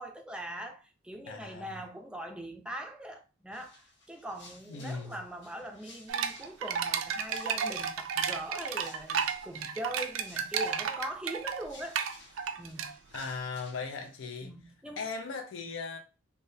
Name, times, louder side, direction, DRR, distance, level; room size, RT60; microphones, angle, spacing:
voice 1, 0.0-3.8 4.1-12.0 12.6-12.9 14.4-15.0, right 1 dB, 5° right, 0.4 m, -41 dB
voice 2, 1.3-1.8 4.7-5.2 13.1-14.5 15.0-16.0, left 4 dB, 80° left, 0.5 m, -38 dB
sound 1, 3.5-14.3, left 3 dB, 60° left, 0.9 m, -56 dB
sound 2, 6.1-13.2, right 7 dB, 90° right, 0.4 m, -33 dB
3.4 x 2.2 x 2.6 m
head